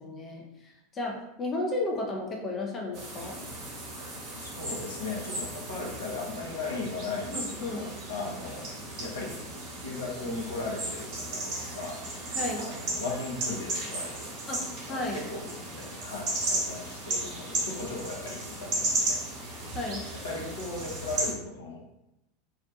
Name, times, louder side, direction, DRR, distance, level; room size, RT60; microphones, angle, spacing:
voice 1, 0.0-3.4 7.3-7.9 12.4-12.6 14.5-15.2 19.7-20.0, left 2 dB, 30° left, -1 dB, 0.4 m, -33 dB
sound 1, 2.9-21.3, right 2 dB, 45° right, 0.7 m, -35 dB
voice 2, 4.4-8.7 9.0-9.4 9.8-12.0 12.6-14.5 14.9-19.2 20.2-21.8, left 3 dB, 75° left, -2 dB, 0.6 m, -37 dB
2.4 x 2.1 x 2.6 m, 0.86 s
figure-of-eight pair, 85°, 0 cm